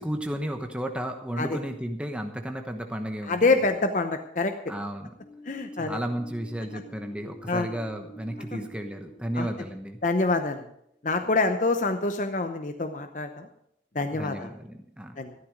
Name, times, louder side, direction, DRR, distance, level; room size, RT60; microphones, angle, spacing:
voice 1, 0.0-3.6 4.7-5.1 5.8-10.0 11.2-11.3 14.1-15.2, right 1 dB, 5° right, 5 dB, 1.0 m, -33 dB
voice 2, 3.3-4.5 5.5-6.0 7.5-7.7 8.5-8.6 9.4-9.5 10.0-10.6 11.0-13.5 13.9-14.5 15.2-15.3, left 3 dB, 45° left, 6 dB, 0.8 m, -26 dB
sound 1, 5.2-10.8, equal, 25° left, 1.6 m, -47 dB
14.0 x 12.5 x 5.2 m, 0.73 s
head